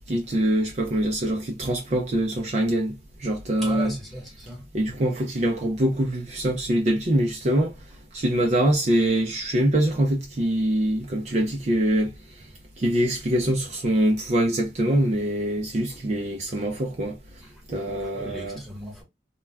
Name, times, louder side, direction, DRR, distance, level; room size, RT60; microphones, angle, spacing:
voice 1, 0.1-3.9 4.7-7.7 8.1-12.1 12.4-12.5 12.8-17.2 17.7-18.6, right 1 dB, 40° right, 0.4 m, -24 dB
voice 2, 3.6-4.6 18.0-19.0, right 1 dB, ahead, 1.0 m, -37 dB
2.3 x 2.2 x 3.3 m
head